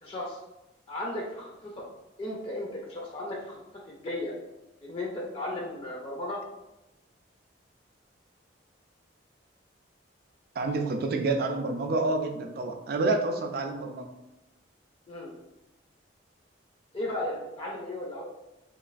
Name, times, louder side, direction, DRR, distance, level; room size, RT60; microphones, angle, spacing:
voice 1, 0.0-0.4 0.9-1.8 2.2-3.6 3.9-4.3 4.8-6.4 15.1-15.3 16.9-18.2, left 1 dB, 30° left, -3 dB, 0.4 m, -35 dB
voice 2, 10.6-14.1, right 2 dB, 50° right, 4 dB, 0.3 m, -28 dB
3.0 x 2.3 x 2.4 m, 0.96 s
head